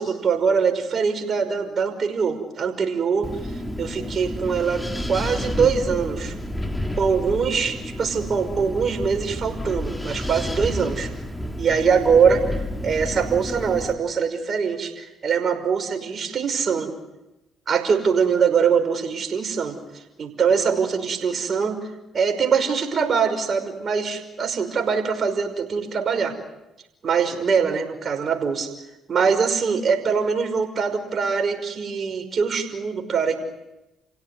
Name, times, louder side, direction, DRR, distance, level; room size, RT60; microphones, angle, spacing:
voice 1, 0.0-3.3 3.8-6.3 7.0-11.1 11.6-16.9 17.7-21.8 22.1-26.3 27.0-28.7 29.1-33.4, right 6 dB, 50° right, 6 dB, 5.6 m, -23 dB
Wind, 3.2-13.9, left 1 dB, 10° left, 3.6 m, -30 dB
29.5 x 17.0 x 9.8 m, 0.98 s
hypercardioid pair, 55°, 0 cm